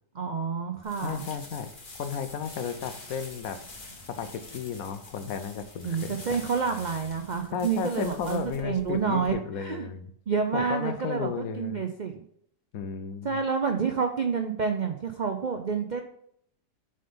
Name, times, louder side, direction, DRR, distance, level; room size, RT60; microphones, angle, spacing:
voice 1, 0.1-1.3 5.8-9.9 10.3-12.2 13.2-16.0, right 6 dB, 80° right, 5 dB, 0.4 m, -29 dB
sound 1, 0.8-9.3, left 2 dB, 35° left, 1.3 m, -46 dB
voice 2, 1.0-1.7 2.0-3.6 4.1-6.4 7.5-10.1 10.5-11.9 12.7-13.4, left 7 dB, 65° left, 10 dB, 1.1 m, -33 dB
7.6 x 4.0 x 5.2 m, 0.69 s
omnidirectional pair, 1.7 m